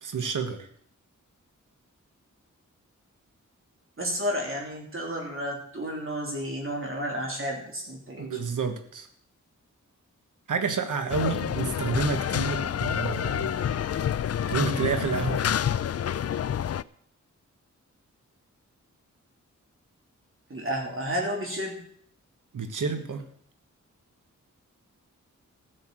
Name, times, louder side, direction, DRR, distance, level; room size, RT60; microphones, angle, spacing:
voice 1, 0.0-0.7 8.2-9.1 10.5-14.0 14.5-15.5 22.5-23.2, right 5 dB, 85° right, 7 dB, 1.5 m, -30 dB
voice 2, 4.0-8.3 20.5-21.8, equal, 45° right, -1 dB, 3.2 m, -31 dB
sound 1, 11.1-16.8, left 9 dB, 55° left, 0.4 m, -28 dB
14.5 x 6.7 x 7.6 m, 0.63 s
wide cardioid pair, 125°, 30 cm